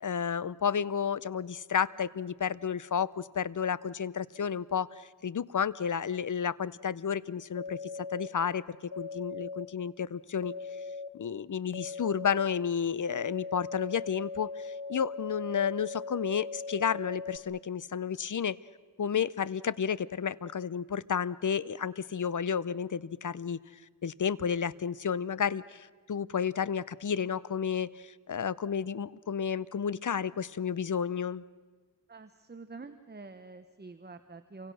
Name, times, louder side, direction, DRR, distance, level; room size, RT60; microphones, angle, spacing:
voice 1, 0.0-7.8 8.1-10.6 11.1-18.6 19.0-23.6 24.0-31.4, left 7 dB, 55° left, 19 dB, 0.6 m, -31 dB
sound 1, 7.5-8.3 8.9-9.7 10.4-11.1 11.7-12.4 13.1-17.4, left 4 dB, 75° left, 1.0 m, -39 dB
voice 2, 32.1-34.7, right 3 dB, 25° right, 9 dB, 1.0 m, -47 dB
28.5 x 24.5 x 6.3 m, 1.5 s
wide cardioid pair, 80°, 38 cm